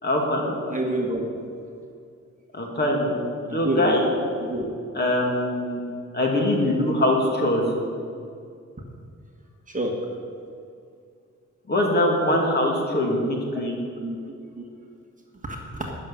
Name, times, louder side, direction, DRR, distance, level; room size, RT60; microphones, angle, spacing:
voice 1, 0.0-0.6 2.5-3.1 3.4-4.1 4.9-5.8 6.1-7.7 11.7-13.8, left 1 dB, 35° left, 0 dB, 2.4 m, -23 dB
voice 2, 0.7-1.2 3.5-4.1 4.4-4.7 9.7-9.9 13.5-13.6 14.0-14.2 14.6-14.7 15.4-15.9, right 1 dB, 25° right, 1 dB, 1.6 m, -28 dB
13.0 x 6.6 x 10.0 m, 2.3 s
wide cardioid pair, 155°, 29 cm